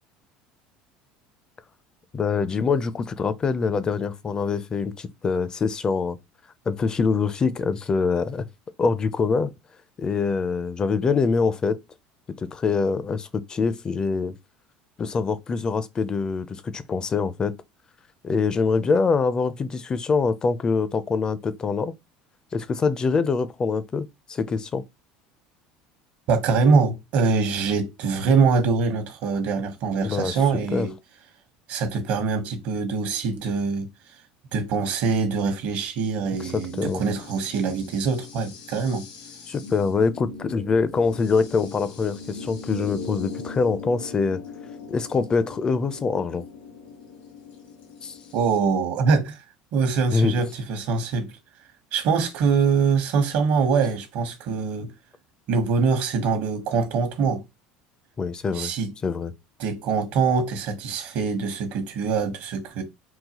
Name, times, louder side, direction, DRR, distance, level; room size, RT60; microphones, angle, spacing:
voice 1, 2.1-6.2 6.7-8.5 8.8-9.5 10.0-11.8 12.4-14.3 15.0-17.5 18.2-21.9 22.5-24.8 30.0-30.4 30.7-30.9 36.4-37.0 39.5-44.4 44.9-46.4 48.0-48.2 50.1-50.3 58.2-58.7 59.0-59.3, left 4 dB, 25° left, 0.4 m, -24 dB
voice 2, 26.3-30.9 31.7-33.9 34.5-39.0 48.3-49.4 49.7-51.3 51.9-54.9 55.5-57.4 58.5-58.9 59.6-62.8, right 5 dB, 65° right, 1.0 m, -23 dB
sound 1, 36.3-48.6, left 4 dB, 75° left, 1.1 m, -40 dB
3.8 x 2.3 x 2.8 m
supercardioid pair, 105°, 3 cm